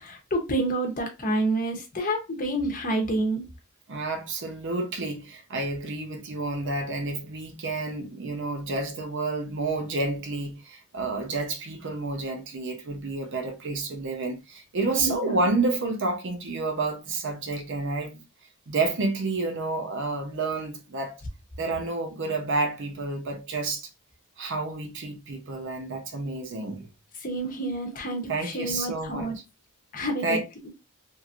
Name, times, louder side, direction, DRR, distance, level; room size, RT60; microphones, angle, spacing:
voice 1, 0.0-3.4 14.9-15.5 27.2-29.4 29.9-30.7, right 1 dB, 40° left, 0.8 m, -29 dB
voice 2, 3.9-18.2 18.7-21.2 21.6-23.9 24.4-26.9 28.3-29.3 30.2-30.5, right 3 dB, 55° right, 0.7 m, -29 dB
3.1 x 2.6 x 2.4 m
head